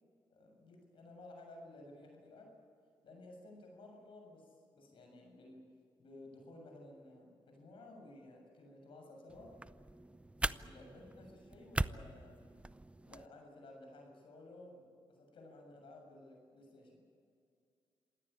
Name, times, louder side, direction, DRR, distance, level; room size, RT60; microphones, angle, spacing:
voice 1, 0.3-2.5 3.0-5.6 6.0-9.6 10.4-12.4 13.0-17.0, left 2 dB, 70° left, 2 dB, 7.0 m, -55 dB
sound 1, 9.3-13.3, right 2 dB, 15° right, 0.6 m, -41 dB
27.0 x 17.5 x 8.8 m, 2.3 s
cardioid pair, 75°, 9 cm